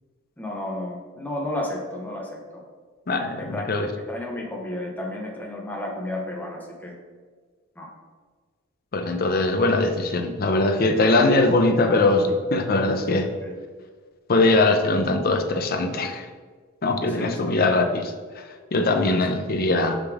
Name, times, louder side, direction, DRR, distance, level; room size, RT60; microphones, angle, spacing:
voice 1, 0.4-2.6 3.4-6.9 7.8-7.9 13.2-13.6 17.1-17.6, left 1 dB, 10° left, -2 dB, 0.9 m, -33 dB
voice 2, 3.1-3.9 8.9-13.3 14.3-16.3 16.8-18.4 18.7-20.0, left 2 dB, 45° left, 6 dB, 0.6 m, -21 dB
6.3 x 5.0 x 3.5 m, 1.5 s
head